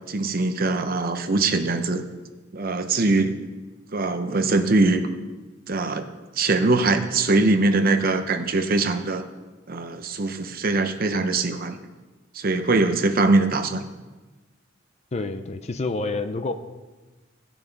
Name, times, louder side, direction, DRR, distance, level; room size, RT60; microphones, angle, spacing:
voice 1, 0.1-2.0 2.5-3.3 3.9-5.0 5.7-6.0 6.4-9.2 9.7-11.8 12.3-13.8, right 3 dB, 50° right, 7 dB, 0.8 m, -22 dB
voice 2, 15.1-16.5, left 3 dB, 35° left, 9 dB, 0.5 m, -28 dB
17.0 x 6.0 x 4.0 m, 1.2 s
head